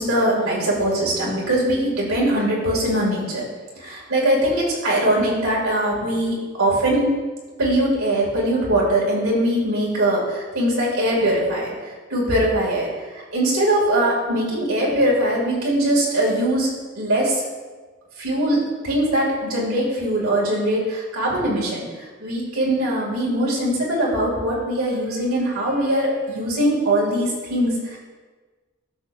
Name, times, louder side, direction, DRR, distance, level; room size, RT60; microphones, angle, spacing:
voice 1, 0.0-3.5 3.8-7.1 7.6-16.7 17.0-17.4 18.2-28.0, right 1 dB, 85° right, -5 dB, 2.5 m, -21 dB
12.0 x 6.1 x 2.6 m, 1.4 s
head